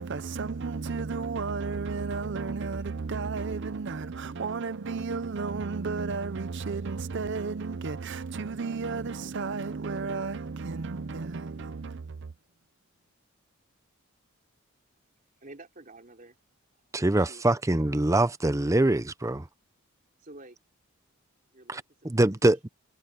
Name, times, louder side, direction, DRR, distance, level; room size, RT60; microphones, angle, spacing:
voice 1, 0.0-12.3, right 4 dB, 60° right, 0.6 m, -33 dB
voice 2, 15.4-16.4 17.1-17.4 20.2-20.6 21.5-21.8 22.2-22.4, right 2 dB, 40° right, 3.9 m, -49 dB
voice 3, 16.9-19.5 21.7-22.7, right 1 dB, 15° right, 0.6 m, -24 dB
head